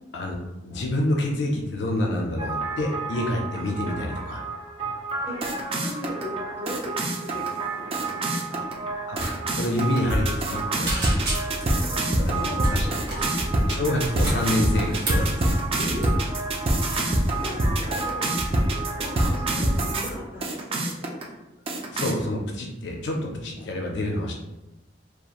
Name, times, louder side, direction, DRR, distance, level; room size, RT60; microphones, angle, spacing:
voice 1, 0.1-4.4 9.1-9.2 9.5-10.9 12.2-12.9 13.7-15.4 21.9-24.3, left 1 dB, 70° left, 1 dB, 0.4 m, -27 dB
sound 1, 2.4-20.1 20.4-21.2 21.7-22.1, right 1 dB, 30° right, 0.4 m, -26 dB
voice 2, 5.8-8.8 11.7-13.5 15.7-16.2 16.7-17.0 17.2-18.2 19.0-21.4, equal, 10° right, -6 dB, 0.8 m, -38 dB
sound 2, 9.2-9.3 9.6-9.8 10.2-10.6 10.9-11.8 12.6-13.3 13.9-15.3 15.8-16.1, right 1 dB, 60° right, 0.8 m, -30 dB
2.8 x 2.3 x 2.4 m, 0.96 s
head